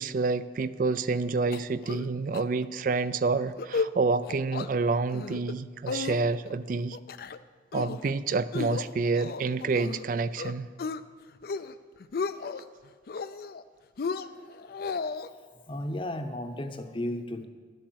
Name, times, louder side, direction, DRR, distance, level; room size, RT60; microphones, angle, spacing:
voice 1, 0.0-7.0 7.7-10.7, right 4 dB, 50° right, 15 dB, 0.4 m, -28 dB
sound 1, 1.5-2.1 2.3-2.4 2.8-3.1 3.5-3.9 4.2-4.7 5.1-5.5 5.9-6.5 6.9-7.4 7.7-8.1 8.5-10.0 10.4-11.0 11.4-11.7 12.0-12.6 13.1-13.6 14.0-15.3, left 4 dB, 55° left, 0.4 m, -34 dB
voice 2, 15.7-17.5, left 1 dB, 30° left, 7 dB, 0.7 m, -34 dB
11.5 x 7.9 x 6.3 m, 1.6 s
head